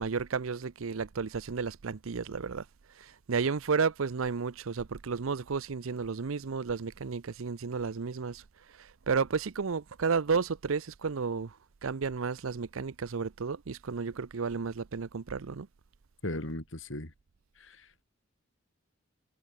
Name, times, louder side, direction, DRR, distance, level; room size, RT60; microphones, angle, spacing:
voice 1, 0.0-2.6 3.3-8.4 9.1-11.5 11.8-15.7, right 5 dB, 80° right, 0.6 m, -32 dB
voice 2, 16.2-17.1 17.6-18.0, left 1 dB, 65° left, 4.3 m, -37 dB
head